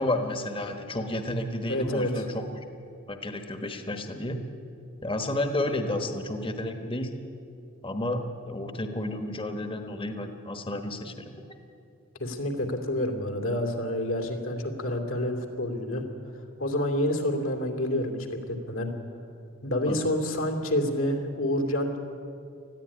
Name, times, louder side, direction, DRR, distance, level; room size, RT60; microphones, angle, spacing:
voice 1, 0.0-2.6 3.1-4.4 5.0-7.1 7.8-11.4 19.9-20.1, left 1 dB, 25° left, 6 dB, 1.3 m, -31 dB
voice 2, 1.7-2.2 12.2-16.0 16.6-18.9 19.6-22.0, left 1 dB, 70° left, 3 dB, 2.8 m, -28 dB
20.0 x 14.5 x 10.0 m, 2.6 s
head